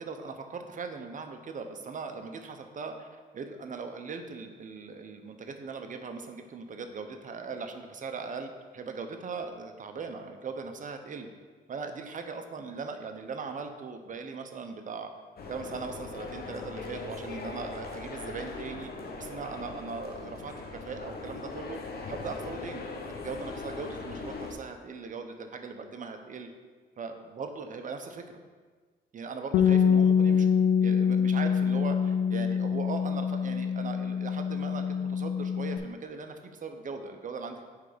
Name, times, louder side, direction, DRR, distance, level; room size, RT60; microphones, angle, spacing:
voice 1, 0.0-11.3 11.7-15.1 15.5-18.9 19.2-21.8 22.1-26.5 27.0-28.2 29.1-30.5 30.8-37.6, right 4 dB, 40° right, 6 dB, 0.8 m, -39 dB
sound 1, 15.4-24.5, left 3 dB, 50° left, 1.0 m, -40 dB
Bass guitar, 29.5-35.8, left 7 dB, 80° left, 0.5 m, -25 dB
8.1 x 3.5 x 5.1 m, 1.5 s
cardioid pair, 90°, 20 cm